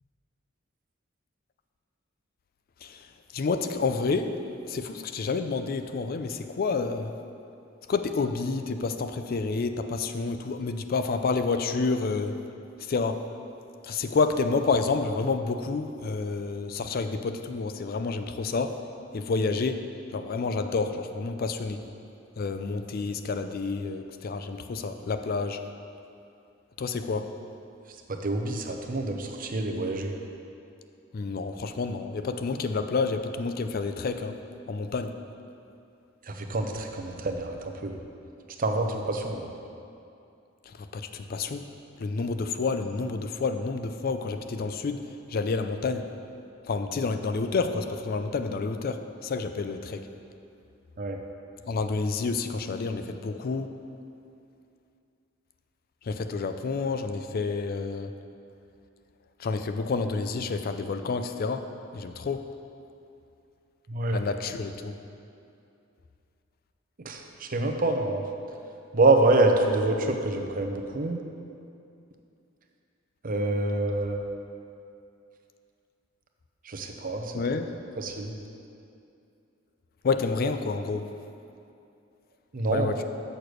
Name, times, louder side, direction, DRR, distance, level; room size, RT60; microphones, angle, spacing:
voice 1, 3.3-4.3 4.6-7.1 7.9-12.3 12.9-13.2 13.9-18.7 19.1-19.8 20.1-21.8 22.4-25.6 26.8-27.3 31.1-34.3 34.7-35.1 40.9-41.6 42.0-45.0 45.3-46.0 46.7-50.0 51.7-53.7 56.1-58.1 59.4-61.6 61.9-62.4 64.1-65.0 77.3-77.6 80.0-81.0 82.7-83.0, left 4 dB, 50° left, 8 dB, 0.4 m, -29 dB
voice 2, 28.1-30.1 36.3-37.9 38.6-39.5 51.0-51.2 63.9-64.2 67.0-68.2 68.9-71.2 73.2-74.2 76.7-77.3 78.0-78.4 82.5-82.9, right 2 dB, 45° right, 3 dB, 0.7 m, -26 dB
6.7 x 6.6 x 6.1 m, 2.6 s
head